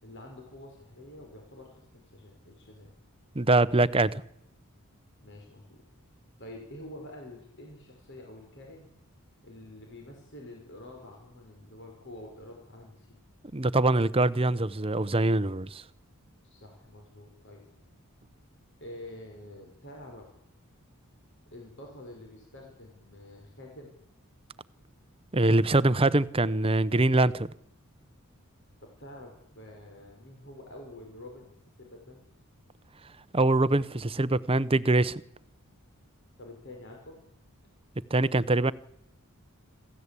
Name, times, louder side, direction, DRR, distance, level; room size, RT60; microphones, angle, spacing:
voice 1, 0.0-2.9 5.2-5.8 6.4-8.9 9.4-13.2 16.4-17.7 18.8-20.3 21.5-23.9 28.8-31.5 31.8-32.2 36.4-37.2, left 1 dB, 55° left, 5.3 m, -47 dB
voice 2, 3.3-4.2 13.5-15.8 25.3-27.5 33.3-35.2 38.1-38.7, right 2 dB, 25° right, 0.8 m, -23 dB
27.0 x 15.5 x 8.4 m
head